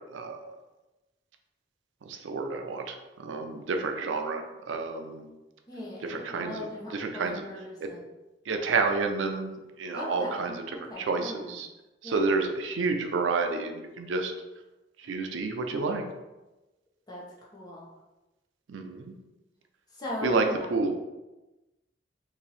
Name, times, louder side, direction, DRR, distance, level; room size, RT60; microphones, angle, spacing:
voice 1, 0.1-0.5 2.1-2.9 3.2-4.4 4.7-5.3 6.0-6.7 6.9-7.4 7.8-7.9 8.5-10.5 11.0-11.7 12.0-14.3 15.1-16.0 18.7-19.2 20.2-20.4 20.7-21.0, right 4 dB, 80° right, 4 dB, 0.4 m, -29 dB
voice 2, 5.7-8.0 9.9-11.6 12.0-12.3 17.1-17.9 19.9-20.7, left 1 dB, 20° left, -5 dB, 0.8 m, -39 dB
3.0 x 2.6 x 4.0 m, 1.0 s
head